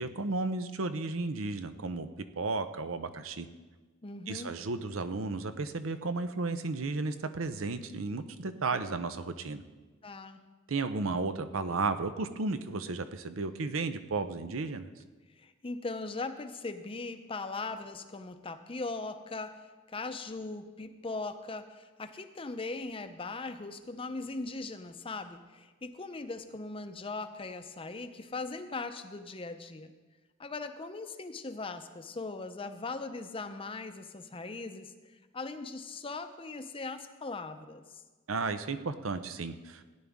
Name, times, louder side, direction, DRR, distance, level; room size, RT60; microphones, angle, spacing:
voice 1, 0.0-2.1 2.4-3.5 4.3-9.6 10.7-14.9 38.3-39.8, right 3 dB, 75° right, 10 dB, 0.7 m, -33 dB
voice 2, 4.0-4.5 10.0-10.4 15.4-29.9 30.4-37.8, left 3 dB, 25° left, 9 dB, 0.7 m, -39 dB
16.5 x 10.5 x 3.6 m, 1.3 s
head